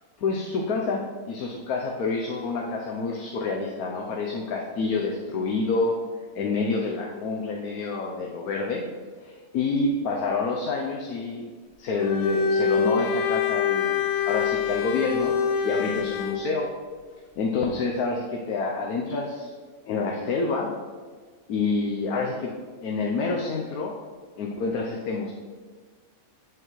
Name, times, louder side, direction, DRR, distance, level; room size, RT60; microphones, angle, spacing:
voice 1, 0.2-5.9 6.3-8.8 9.2-11.4 11.8-13.9 14.3-15.3 15.6-16.7 17.4-19.5 19.9-20.7 21.5-22.5 22.8-23.9 24.4-25.3, left 4 dB, 80° left, -1 dB, 1.2 m, -27 dB
Bowed string instrument, 12.0-16.5, left 6 dB, 65° left, 0.9 m, -25 dB
7.8 x 7.7 x 3.1 m, 1.5 s
omnidirectional pair, 1.6 m